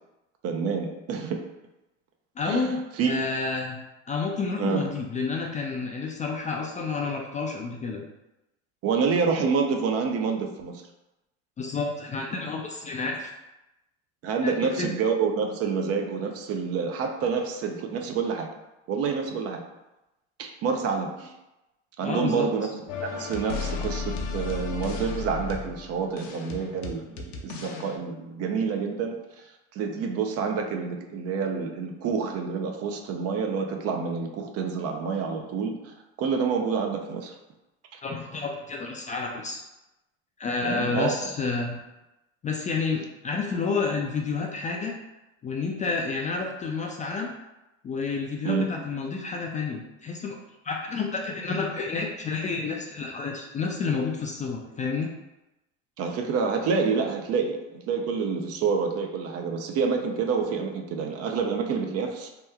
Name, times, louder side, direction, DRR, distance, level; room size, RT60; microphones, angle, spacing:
voice 1, 0.4-1.4 2.4-3.1 4.6-4.9 8.8-10.8 14.2-18.5 18.9-19.6 20.4-21.3 22.0-22.7 23.0-29.4 29.7-37.3 37.9-38.0 40.6-41.3 48.4-48.7 56.0-62.3, right 5 dB, 45° right, 4 dB, 0.5 m, -28 dB
voice 2, 2.4-3.8 4.1-8.0 11.6-13.3 14.4-14.9 22.0-22.5 38.0-39.6 40.4-41.8 42.4-44.9 45.4-47.3 47.8-50.4 50.6-55.1, left 4 dB, 20° left, 0 dB, 0.3 m, -30 dB
sound 1, 22.9-28.0, left 5 dB, 70° left, 0.7 m, -34 dB
2.9 x 2.2 x 3.4 m, 0.97 s
supercardioid pair, 95°, 35 cm